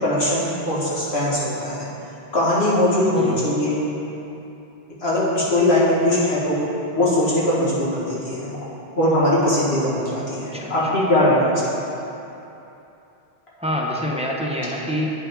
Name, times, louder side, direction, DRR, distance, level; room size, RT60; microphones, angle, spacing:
voice 1, 0.0-1.9 2.3-3.9 5.0-6.6 7.0-8.6 9.0-11.8, left 1 dB, 80° left, -7 dB, 1.8 m, -20 dB
voice 2, 13.6-15.1, equal, 10° right, -3 dB, 0.5 m, -26 dB
8.7 x 5.7 x 3.6 m, 2.9 s
omnidirectional pair, 1.1 m